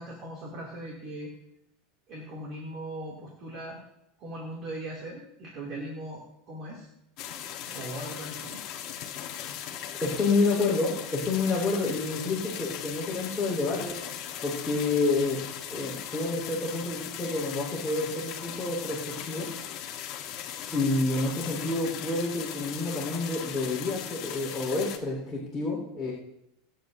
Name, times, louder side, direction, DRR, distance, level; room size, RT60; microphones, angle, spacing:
voice 1, 0.0-1.3 2.1-3.8 4.2-6.9 7.7-8.6, right 1 dB, 35° right, -2 dB, 2.7 m, -39 dB
sound 1, 7.2-25.0, left 10 dB, 40° left, 1.4 m, -38 dB
voice 2, 10.0-13.9 14.4-15.4 15.7-19.5 20.7-26.1, left 3 dB, 10° left, -7 dB, 4.2 m, -29 dB
26.5 x 9.2 x 2.7 m, 0.82 s
supercardioid pair, 170°, 0 cm